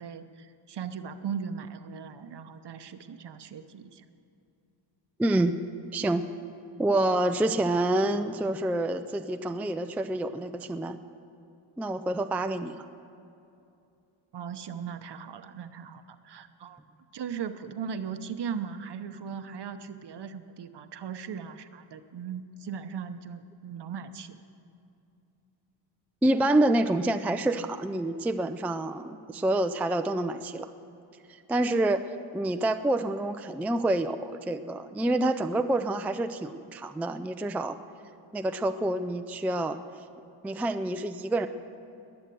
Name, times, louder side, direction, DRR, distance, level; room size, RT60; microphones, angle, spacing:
voice 1, 0.0-4.1 14.3-16.8 17.1-24.4, right 7 dB, 60° right, 10 dB, 0.9 m, -38 dB
voice 2, 5.2-5.5 5.9-6.2 6.8-11.0 11.8-12.9 26.2-30.7 31.3-32.0 32.3-37.8 38.3-39.8 40.4-41.5, right 1 dB, 5° right, 8 dB, 0.3 m, -27 dB
21.0 x 8.0 x 7.7 m, 2.6 s
wide cardioid pair, 125°, 47 cm